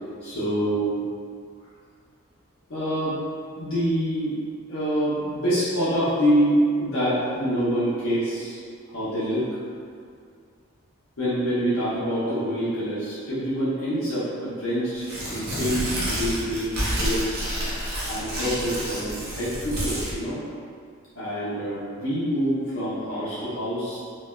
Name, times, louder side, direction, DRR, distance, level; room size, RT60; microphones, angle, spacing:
voice 1, 0.2-1.0 2.7-3.3 3.5-4.4 4.7-8.6 8.9-9.6 11.2-17.3 17.9-20.5 21.1-24.0, equal, 70° left, -11 dB, 0.6 m, -26 dB
Tearing, 15.0-20.1, equal, 45° right, 0.5 m, -29 dB
3.1 x 2.1 x 2.2 m, 2.2 s
head